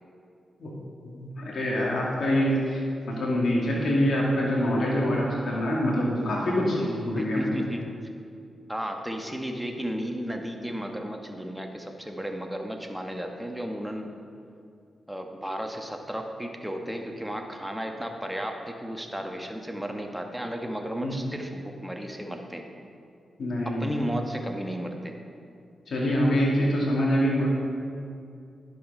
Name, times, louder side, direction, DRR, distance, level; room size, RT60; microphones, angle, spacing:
voice 1, 1.0-7.5 21.0-21.2 23.4-24.0 25.9-27.5, equal, 65° left, -4 dB, 2.0 m, -25 dB
voice 2, 7.2-7.8 8.7-14.1 15.1-22.7 23.6-25.2, equal, 5° right, 3 dB, 1.3 m, -34 dB
11.0 x 5.5 x 5.4 m, 2.4 s
supercardioid pair, 50°, 0 cm